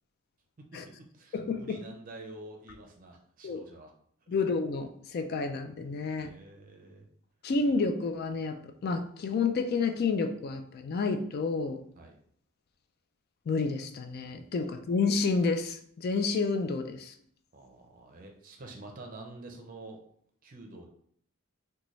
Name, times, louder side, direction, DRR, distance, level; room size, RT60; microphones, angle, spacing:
voice 1, 0.6-3.9 6.2-7.1 12.0-12.1 17.5-20.0 20.4-20.9, right 2 dB, 40° right, 2 dB, 0.6 m, -48 dB
voice 2, 1.3-1.8 3.4-3.6 4.3-6.3 7.4-8.6 8.8-11.8 13.5-17.1, left 4 dB, 50° left, 6 dB, 0.3 m, -30 dB
3.9 x 2.2 x 3.1 m, 0.63 s
head